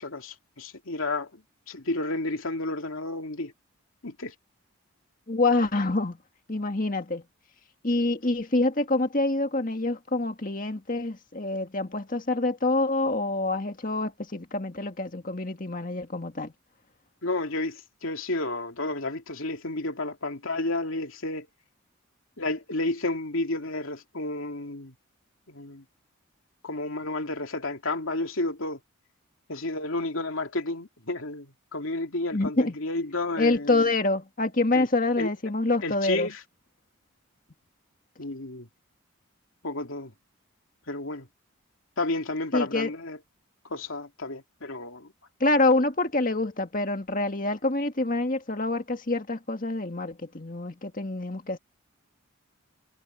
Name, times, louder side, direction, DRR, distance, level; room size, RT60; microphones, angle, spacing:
voice 1, 0.0-1.4 1.7-3.5 4.0-4.3 17.2-21.5 22.4-24.9 25.5-25.8 26.6-28.8 29.5-33.9 34.7-34.9 35.2-35.3 35.8-36.4 38.2-38.7 39.6-40.1 40.9-41.3 42.0-43.2 43.7-45.1, left 2 dB, 75° left, 2.5 m, -31 dB
voice 2, 5.3-6.2 6.5-7.2 7.8-16.5 32.3-32.7 33.4-36.3 42.5-42.9 45.4-51.6, left 2 dB, 40° left, 1.9 m, -26 dB
head